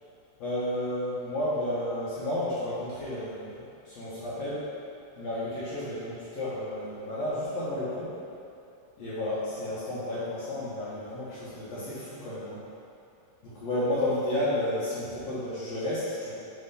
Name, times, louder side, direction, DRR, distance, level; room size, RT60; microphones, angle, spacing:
voice 1, 0.4-4.7 5.2-8.1 9.0-12.6 13.4-16.3, left 1 dB, 65° left, -10 dB, 1.8 m, -32 dB
7.1 x 3.6 x 4.1 m, 2.6 s
omnidirectional pair, 4.0 m